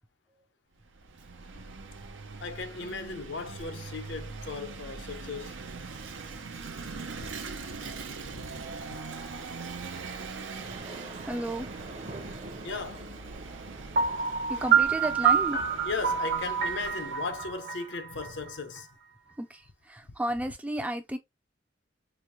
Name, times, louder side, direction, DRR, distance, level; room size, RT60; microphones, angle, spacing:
Vehicle / Engine, 0.8-17.4, right 4 dB, 85° right, 0.7 m, -42 dB
voice 1, 2.4-5.6 7.3-7.4 7.7-7.8 8.3-8.5 8.9-9.0 9.3-9.4 12.6-13.1 15.8-18.9, left 4 dB, 65° left, 0.7 m, -37 dB
sound 1, 10.5-17.8, right 2 dB, 35° right, 0.7 m, -47 dB
voice 2, 11.3-11.7 14.5-15.6 19.4-21.2, right 1 dB, 10° right, 0.4 m, -33 dB
Piano, 14.0-18.8, right 7 dB, 60° right, 1.0 m, -27 dB
4.9 x 2.1 x 2.9 m
head